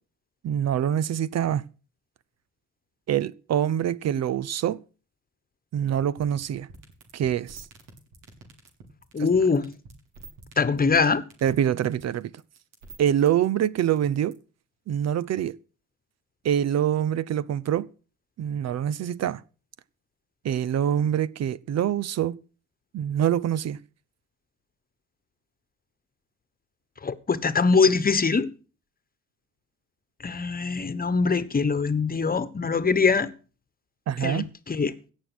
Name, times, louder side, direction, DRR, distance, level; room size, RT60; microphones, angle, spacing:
voice 1, 0.4-1.6 3.1-4.8 5.7-6.7 7.1-7.6 9.2-9.3 11.4-12.3 13.0-14.4 14.9-15.5 16.4-17.9 18.4-19.4 20.4-22.4 22.9-23.8 34.1-34.5, right 10 dB, 60° right, 0.7 m, -25 dB
sound 1, 6.1-14.3, right 3 dB, 85° right, 4.1 m, -47 dB
voice 2, 9.1-9.7 10.6-11.2 27.0-28.5 30.2-33.3 34.2-34.9, left 4 dB, 30° left, 1.2 m, -23 dB
16.5 x 6.3 x 6.2 m
cardioid pair, 90°, 30 cm